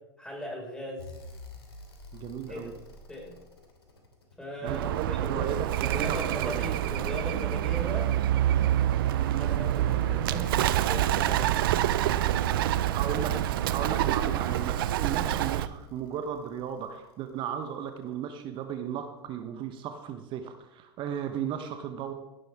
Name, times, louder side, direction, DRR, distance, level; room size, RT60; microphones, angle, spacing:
voice 1, 0.2-1.1 2.5-2.6 3.1-3.4 4.4-5.5 5.8-8.1 9.4-11.8, equal, 5° left, -1 dB, 5.7 m, -38 dB
Vent fan, 1.0-5.2 6.4-17.6 19.2-19.3, equal, 80° left, 2.7 m, -47 dB
voice 2, 2.1-2.7 4.6-5.7 6.0-6.7 12.9-13.4 13.7-22.1, right 8 dB, 40° right, 7 dB, 1.2 m, -35 dB
Bird, 4.7-15.7, right 13 dB, 65° right, 0.6 m, -27 dB
16.5 x 11.0 x 3.7 m, 0.97 s
figure-of-eight pair, 85°, 13 cm